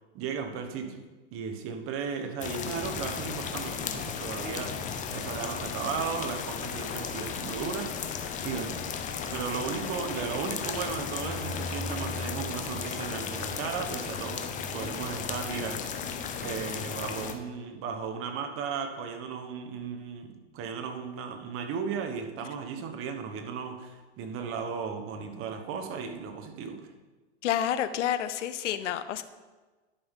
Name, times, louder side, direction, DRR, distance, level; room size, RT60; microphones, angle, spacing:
voice 1, 0.1-1.0 1.3-8.8 9.2-14.5 14.7-15.8 16.4-26.9, right 6 dB, 40° right, 5 dB, 1.1 m, -35 dB
sound 1, 2.4-17.3, left 6 dB, 20° left, 0.6 m, -35 dB
voice 2, 27.4-29.2, left 10 dB, 80° left, 11 dB, 0.6 m, -29 dB
10.5 x 5.7 x 3.6 m, 1.3 s
hypercardioid pair, 110°, 35 cm